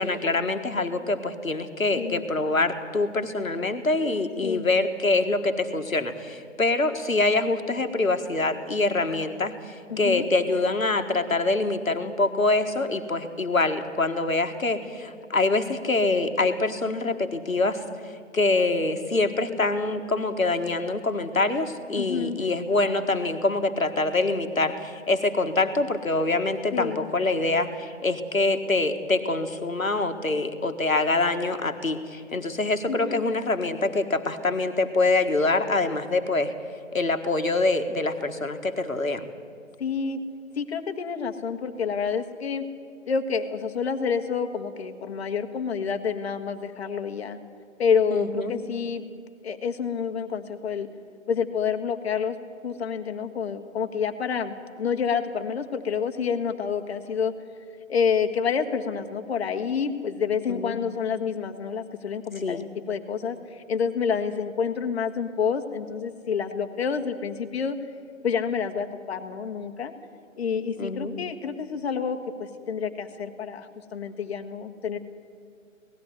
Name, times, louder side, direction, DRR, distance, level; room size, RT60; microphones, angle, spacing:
voice 1, 0.0-36.5 36.9-39.2 48.1-48.5 60.5-60.8 62.4-62.6 70.8-71.2, left 2 dB, 90° left, 8 dB, 1.6 m, -25 dB
voice 2, 2.0-2.3 4.4-4.7 9.9-10.3 22.0-22.4 26.7-27.1 32.9-33.3 39.8-40.2 40.6-42.6 43.1-47.4 47.8-49.1 49.4-50.9 51.3-52.4 52.6-57.3 57.9-67.8 68.2-69.9 70.4-75.0, left 6 dB, 50° left, 7 dB, 1.6 m, -28 dB
18.5 x 14.5 x 9.6 m, 2.4 s
figure-of-eight pair, 135°, 40 cm